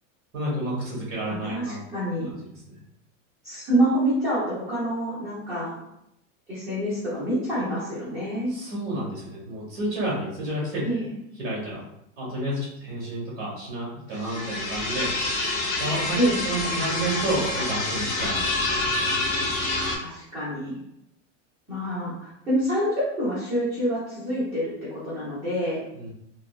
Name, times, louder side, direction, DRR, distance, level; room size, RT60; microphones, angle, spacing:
voice 1, 0.3-1.8 2.3-2.4 2.7-2.8 8.5-10.8 11.4-11.8 12.2-15.1 15.7-16.2 16.4-19.3 25.9-26.1, right 1 dB, 25° right, -5 dB, 1.0 m, -30 dB
voice 2, 1.3-2.3 3.4-5.8 6.5-8.5 10.8-11.1 16.2-16.4 20.0-20.8 21.7-25.8, equal, 10° right, -14 dB, 0.5 m, -27 dB
sound 1, 14.1-20.0, left 2 dB, 55° left, 0.7 m, -27 dB
3.4 x 2.0 x 2.3 m, 0.81 s
supercardioid pair, 180°, 39 cm